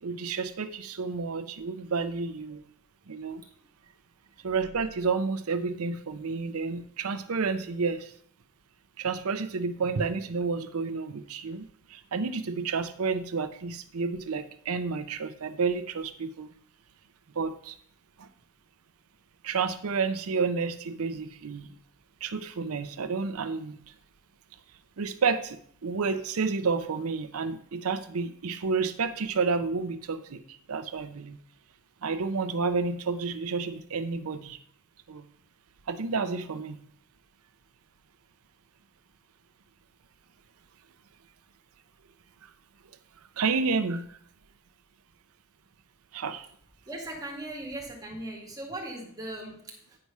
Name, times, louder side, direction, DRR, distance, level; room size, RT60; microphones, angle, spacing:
voice 1, 0.0-2.6 3.1-3.4 4.4-8.1 9.0-16.5 17.4-17.8 18.2-18.3 19.4-21.7 22.2-23.8 25.0-31.4 32.0-34.6 35.1-35.2 35.9-36.8 42.4-42.5 43.4-44.2 46.1-46.5, right 4 dB, 75° right, 11 dB, 0.6 m, -30 dB
voice 2, 46.9-50.0, right 1 dB, 15° right, -1 dB, 2.2 m, -39 dB
9.7 x 4.7 x 5.4 m, 0.62 s
head